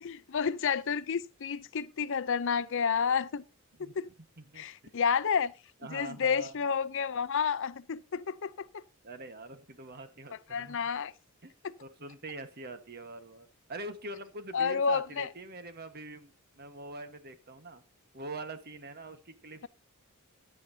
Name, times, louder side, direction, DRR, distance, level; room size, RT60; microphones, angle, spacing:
voice 1, 0.0-3.4 3.8-4.1 4.6-5.5 5.9-8.8 10.5-11.1 11.6-11.7 14.5-15.3, left 6 dB, 60° left, 0.6 m, -30 dB
voice 2, 4.4-4.9 5.8-6.6 9.0-10.9 11.4-11.5 11.8-17.8 18.1-19.7, right 2 dB, 45° right, 1.4 m, -44 dB
15.5 x 10.5 x 2.8 m
head